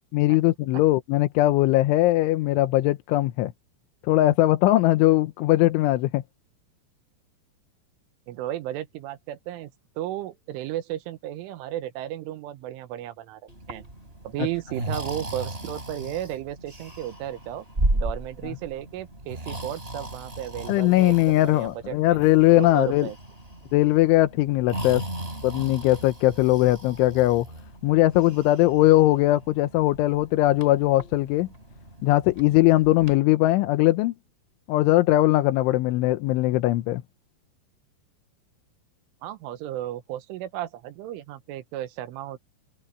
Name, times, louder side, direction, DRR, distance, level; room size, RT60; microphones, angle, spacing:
voice 1, 0.1-3.5 4.0-6.2 20.7-23.1 23.7-25.0 25.4-27.5 27.8-31.5 32.0-34.1 34.7-37.0, left 16 dB, 80° left, 3.2 m, -20 dB
voice 2, 8.3-13.4 13.7-13.9 14.3-17.7 17.9-22.2 22.6-23.2 39.2-42.4, right 13 dB, 80° right, 3.5 m, -34 dB
Breathing, 13.5-33.2, right 1 dB, 10° right, 5.6 m, -36 dB
omnidirectional pair, 5.8 m